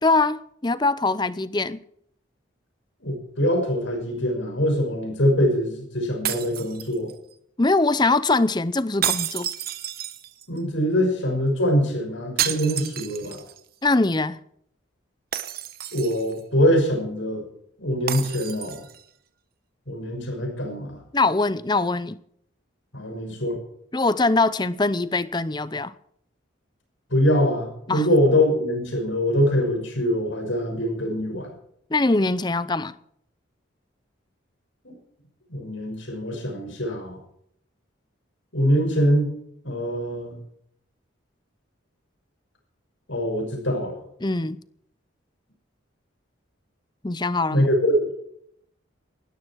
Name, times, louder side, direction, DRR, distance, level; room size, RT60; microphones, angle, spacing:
voice 1, 0.0-1.8 7.6-9.5 13.8-14.4 21.1-22.2 23.9-25.9 27.9-28.1 31.9-32.9 44.2-44.6 47.0-47.7, left 3 dB, 20° left, 0.6 m, -22 dB
voice 2, 3.0-7.1 10.5-13.4 15.9-17.4 17.8-18.8 19.9-21.0 22.9-23.6 27.1-31.5 34.8-35.0 35.5-37.2 38.5-39.3 39.6-40.4 43.1-44.0 47.5-48.1, equal, 70° left, 6.1 m, -23 dB
sound 1, 6.2-7.3 9.0-10.6 12.4-13.6 13.9-14.0 15.3-16.4 18.1-19.0, right 11 dB, 50° right, 1.0 m, -30 dB
19.0 x 14.0 x 4.7 m
head